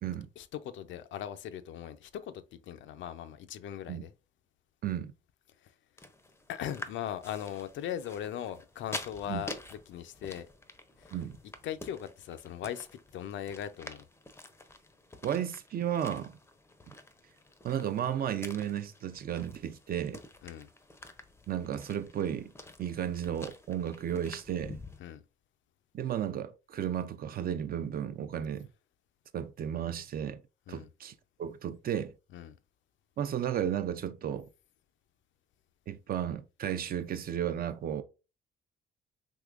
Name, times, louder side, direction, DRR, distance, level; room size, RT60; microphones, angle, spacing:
voice 1, 0.4-4.1 5.6-5.7 6.5-10.5 11.0-11.1 11.6-12.9 13.1-14.0 20.4-20.7 25.0-25.2 30.7-30.9 32.3-32.6, left 10 dB, 70° left, 0.4 m, -39 dB
sound 1, 6.0-25.0, left 2 dB, 10° left, 0.5 m, -48 dB
voice 2, 15.2-16.3 17.6-20.2 21.5-22.5 22.8-24.8 25.9-28.7 29.3-30.4 30.7-31.1 31.4-32.1 33.2-34.5 35.9-38.0, right 9 dB, 50° right, 0.4 m, -33 dB
3.6 x 2.9 x 2.4 m
cardioid pair, 90°, 20 cm